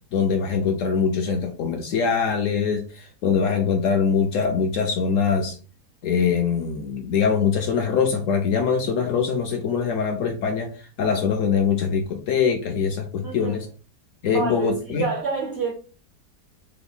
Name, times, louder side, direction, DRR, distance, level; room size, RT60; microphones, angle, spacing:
voice 1, 0.1-5.6 6.0-10.7 11.0-13.7 14.2-15.1, left 6 dB, 70° left, 0.8 m, -23 dB
voice 2, 13.2-13.6 14.3-15.7, right 4 dB, 60° right, 0.7 m, -28 dB
3.4 x 2.2 x 3.5 m
omnidirectional pair, 1.7 m